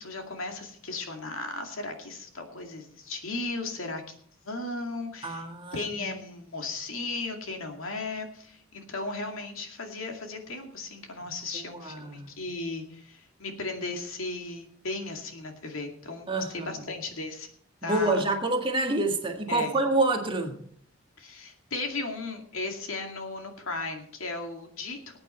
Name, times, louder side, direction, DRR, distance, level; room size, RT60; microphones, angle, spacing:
voice 1, 0.0-4.0 4.4-5.4 5.7-17.5 17.8-18.2 19.5-19.8 21.2-25.2, left 3 dB, 70° left, 2.3 m, -36 dB
voice 2, 5.2-6.1 11.7-12.3 16.3-16.9 17.8-20.5, right 2 dB, 25° right, 1.7 m, -28 dB
19.0 x 8.9 x 4.4 m
head